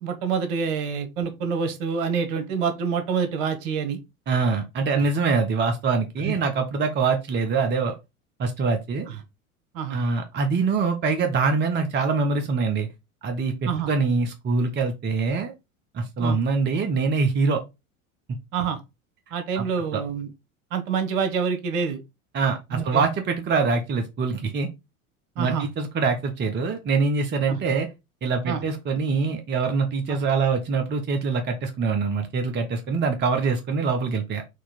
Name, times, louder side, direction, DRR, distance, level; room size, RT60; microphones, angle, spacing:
voice 1, 0.0-4.0 4.9-5.1 6.2-6.4 9.1-9.2 9.7-10.0 13.6-13.9 16.2-16.4 18.5-18.8 19.3-20.3 20.7-22.0 22.7-23.0 25.4-25.7 27.5-27.6 28.4-28.6 30.1-30.2, right 6 dB, 60° right, 1.3 m, -27 dB
voice 2, 4.3-7.9 8.4-9.1 9.9-12.9 13.2-15.5 15.9-17.6 19.6-19.7 19.9-20.0 22.3-24.7 25.4-27.9 28.2-34.4, right 4 dB, 25° right, 0.8 m, -24 dB
4.6 x 2.8 x 4.0 m
figure-of-eight pair, 75°, 43 cm